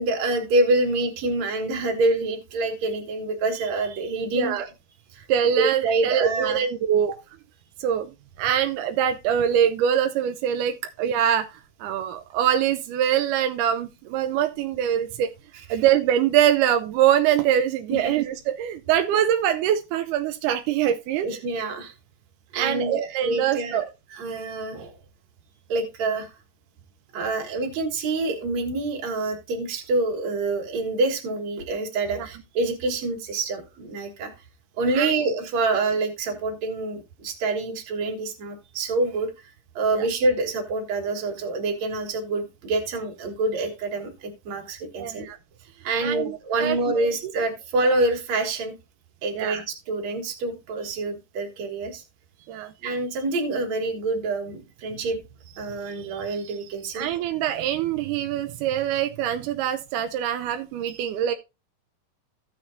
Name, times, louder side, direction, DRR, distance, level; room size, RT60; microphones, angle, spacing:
voice 1, 0.0-4.7 5.1-5.3 5.6-6.6 15.7-15.8 17.9-18.1 21.2-21.9 22.5-23.8 24.1-25.0 25.7-26.4 27.1-34.3 34.8-45.3 45.8-48.7 49.2-52.0 52.8-57.1 60.9-61.1, right 2 dB, 55° right, 2.6 m, -26 dB
voice 2, 5.3-7.1 7.8-15.3 15.7-21.3 22.5-23.9 32.2-32.3 35.0-35.1 39.9-40.1 45.0-45.4 46.0-47.3 49.3-49.6 52.5-52.7 56.9-61.3, right 10 dB, 80° right, 1.9 m, -24 dB
15.0 x 5.9 x 2.7 m
omnidirectional pair, 4.0 m